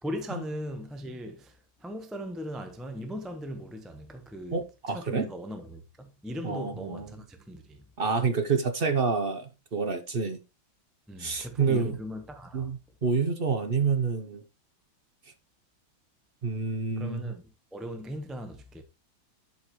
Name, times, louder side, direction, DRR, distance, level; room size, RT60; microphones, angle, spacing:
voice 1, 0.0-7.8 11.1-12.7 17.0-18.8, equal, ahead, 0.6 m, -38 dB
voice 2, 4.5-5.3 6.4-7.1 8.0-10.4 11.2-12.0 12.5-14.4 16.4-17.3, right 5 dB, 45° right, 0.7 m, -28 dB
11.0 x 5.7 x 3.1 m
omnidirectional pair, 2.2 m